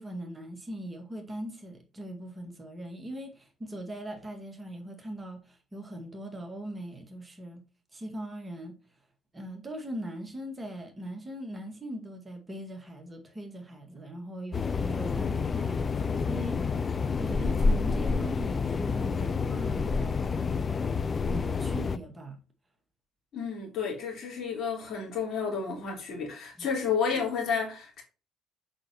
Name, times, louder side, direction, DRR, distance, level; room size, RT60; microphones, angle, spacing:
voice 1, 0.0-7.6 7.9-8.7 9.3-20.4 21.3-22.4 26.6-26.7, right 1 dB, 20° right, 1.9 m, -40 dB
sound 1, 14.5-22.0, left 4 dB, 35° left, 0.5 m, -28 dB
voice 2, 23.3-28.0, left 6 dB, 50° left, 3.7 m, -31 dB
7.5 x 5.9 x 2.9 m
figure-of-eight pair, 50°, 0 cm